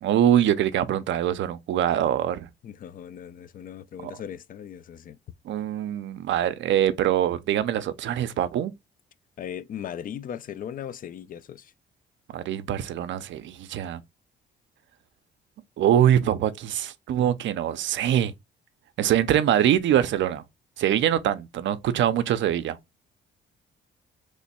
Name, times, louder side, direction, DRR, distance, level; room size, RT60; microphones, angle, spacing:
voice 1, 0.0-2.5 4.0-4.1 5.4-8.7 12.3-14.0 15.8-18.3 19.0-20.4 20.8-22.8, right 11 dB, 70° right, 0.5 m, -23 dB
voice 2, 2.6-5.2 9.4-11.7, left 9 dB, 45° left, 0.4 m, -38 dB
3.1 x 2.2 x 4.1 m
cardioid pair, 90°, 20 cm